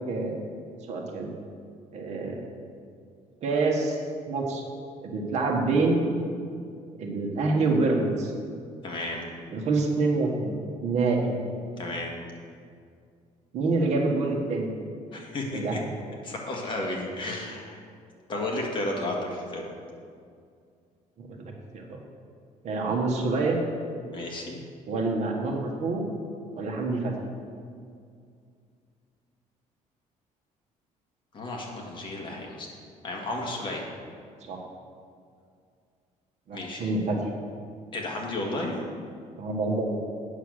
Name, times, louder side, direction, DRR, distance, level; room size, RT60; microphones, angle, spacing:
voice 1, 0.1-0.4 0.9-1.3 1.9-2.4 3.4-4.0 4.3-4.6 5.0-6.1 7.0-8.3 9.5-10.5 10.8-11.3 13.5-14.7 15.5-15.8 21.2-22.0 22.6-23.6 24.9-26.1 26.6-27.1 34.5-34.6 36.5-37.2 39.4-40.0, right 3 dB, 55° right, 1 dB, 1.4 m, -26 dB
voice 2, 8.8-9.2 11.8-12.1 15.1-15.8 16.2-17.8 18.3-19.6 24.1-24.6 31.3-32.7 33.0-33.8 36.5-36.9 37.9-38.8, left 2 dB, 35° left, -1 dB, 1.8 m, -33 dB
8.7 x 6.9 x 6.4 m, 2.3 s
cardioid pair, 145°, 14 cm